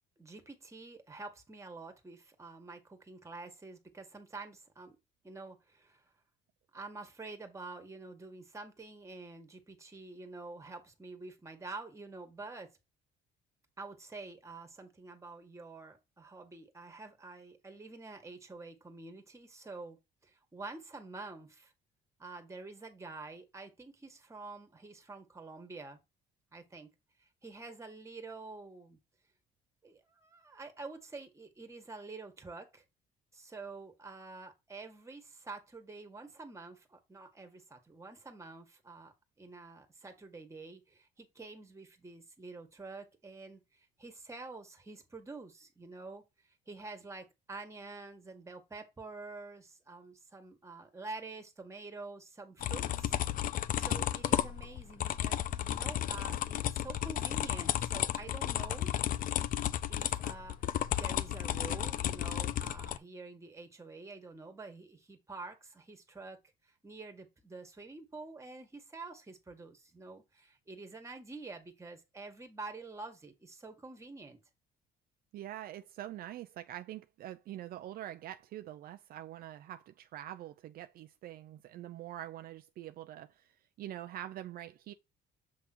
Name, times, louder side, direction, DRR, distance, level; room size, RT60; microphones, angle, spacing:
voice 1, 0.2-5.0 5.2-6.0 6.7-12.7 13.8-21.7 22.2-26.0 26.5-26.9 27.2-29.0 29.8-32.8 33.3-53.2 53.7-58.9 59.9-74.4, right 3 dB, 15° right, 1.9 m, -48 dB
sound 1, 52.6-63.0, left 11 dB, 55° left, 0.5 m, -33 dB
voice 2, 75.3-83.5 83.8-84.9, right 12 dB, 60° right, 0.5 m, -45 dB
7.4 x 3.5 x 4.5 m
cardioid pair, 110°, 17 cm